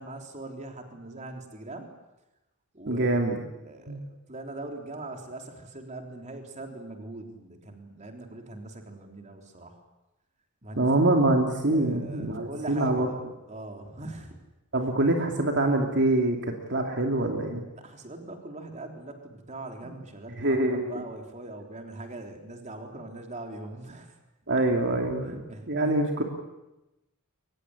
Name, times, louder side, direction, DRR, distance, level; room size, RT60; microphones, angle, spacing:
voice 1, 0.0-1.9 2.7-3.2 3.5-4.0 4.3-9.8 10.6-10.9 11.7-13.2 13.5-14.4 17.8-20.6 20.9-24.1 25.2-26.0, right 2 dB, 35° right, 4 dB, 3.7 m, -41 dB
voice 2, 2.9-3.4 3.9-4.0 10.8-13.1 14.7-17.6 20.4-21.0 24.5-26.2, right 2 dB, 55° right, 3 dB, 2.8 m, -25 dB
23.5 x 20.0 x 9.9 m, 0.97 s
head